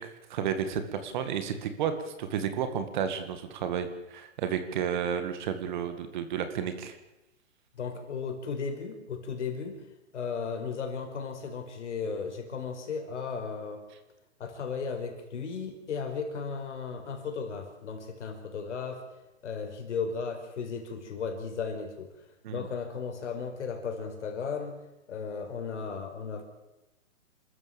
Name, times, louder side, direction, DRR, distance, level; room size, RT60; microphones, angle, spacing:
voice 1, 0.0-7.0 22.4-22.7, right 8 dB, 35° right, 9 dB, 2.2 m, -32 dB
voice 2, 7.7-9.8 10.1-13.9 14.4-19.1 19.4-22.1 22.5-24.8 25.1-26.4, left 5 dB, 60° left, 5 dB, 5.1 m, -35 dB
28.0 x 14.0 x 7.2 m, 0.96 s
hypercardioid pair, 160°, 39 cm